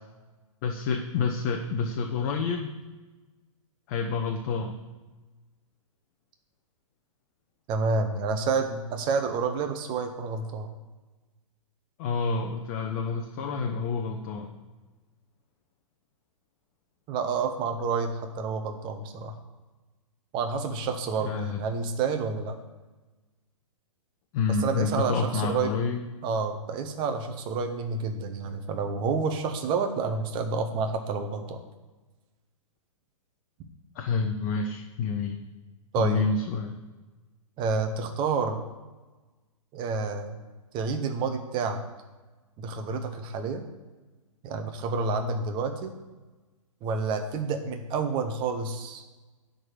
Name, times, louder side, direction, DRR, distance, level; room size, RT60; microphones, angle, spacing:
voice 1, 0.6-2.7 3.9-4.8 12.0-14.5 21.2-21.6 24.3-26.0 33.9-35.4 36.0-36.8, left 4 dB, 35° left, 3 dB, 0.9 m, -28 dB
voice 2, 7.7-10.7 17.1-19.3 20.3-22.6 24.5-25.7 26.2-31.6 35.9-36.3 37.6-38.6 39.7-40.4 40.7-41.8 42.6-43.6 44.4-45.9 46.8-49.0, right 4 dB, 25° right, 6 dB, 1.2 m, -29 dB
11.0 x 4.0 x 6.5 m, 1.2 s
figure-of-eight pair, 110°, 18 cm